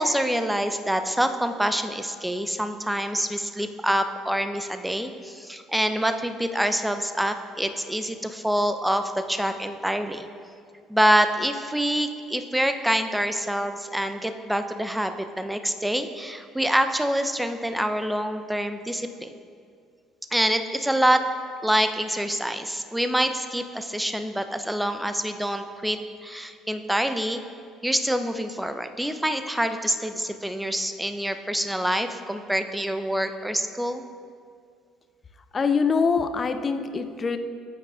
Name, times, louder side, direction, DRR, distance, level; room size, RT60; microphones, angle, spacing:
voice 1, 0.0-10.3 10.9-19.3 20.3-21.3 21.6-27.4 27.8-34.0, equal, 5° right, 8 dB, 0.7 m, -26 dB
voice 2, 35.5-37.4, left 5 dB, 30° left, 9 dB, 0.6 m, -24 dB
14.5 x 9.7 x 2.5 m, 2.2 s
figure-of-eight pair, 55°, 0 cm